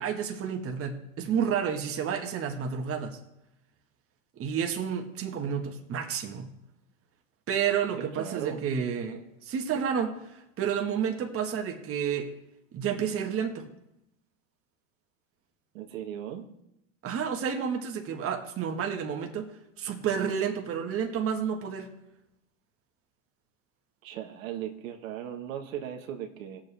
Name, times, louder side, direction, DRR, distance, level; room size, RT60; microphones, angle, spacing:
voice 1, 0.0-3.2 4.4-6.5 7.5-12.3 12.7-13.6 17.0-19.5 19.8-21.9, right 7 dB, 35° right, 3 dB, 1.7 m, -30 dB
voice 2, 8.0-8.6 15.7-16.5 24.0-26.6, right 10 dB, 75° right, 3 dB, 1.6 m, -37 dB
18.5 x 7.5 x 3.4 m, 0.85 s
hypercardioid pair, 110°, 40 cm